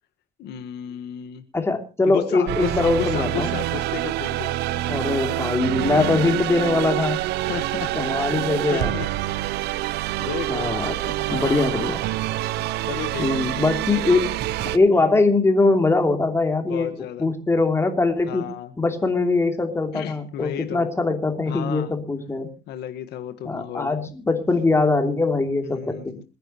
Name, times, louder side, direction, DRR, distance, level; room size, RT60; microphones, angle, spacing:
voice 1, 0.4-1.4 2.1-4.5 5.9-6.0 7.4-8.3 8.7-9.1 10.2-10.7 11.3-11.8 12.9-13.4 16.7-17.3 18.3-18.7 19.9-20.9 21.5-21.9 22.7-23.9 25.6-26.2, left 11 dB, 75° left, 8 dB, 1.6 m, -33 dB
voice 2, 1.5-3.6 4.9-7.2 7.9-9.0 10.5-12.0 13.2-14.3 14.6-18.4 18.8-22.5 23.4-26.1, left 3 dB, 15° left, 4 dB, 3.0 m, -22 dB
sound 1, 2.5-14.8, right 15 dB, 80° right, 0.7 m, -26 dB
27.0 x 10.5 x 3.0 m, 0.32 s
cardioid pair, 110°, 17 cm